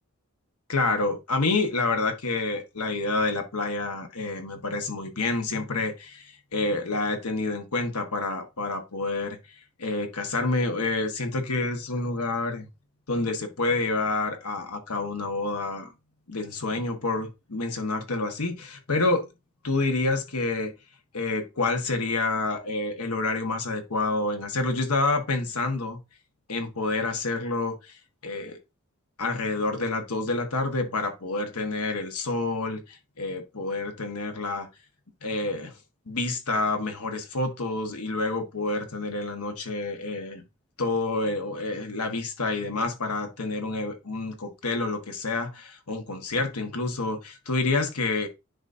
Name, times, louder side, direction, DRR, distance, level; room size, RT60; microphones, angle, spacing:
voice 1, 0.7-9.4 9.8-12.7 13.1-15.9 16.3-19.3 19.6-20.7 21.1-26.0 26.5-28.6 29.2-34.7 35.2-35.7 36.1-40.4 40.8-48.3, left 3 dB, 85° left, 1.5 m, -28 dB
10.0 x 4.1 x 2.7 m
head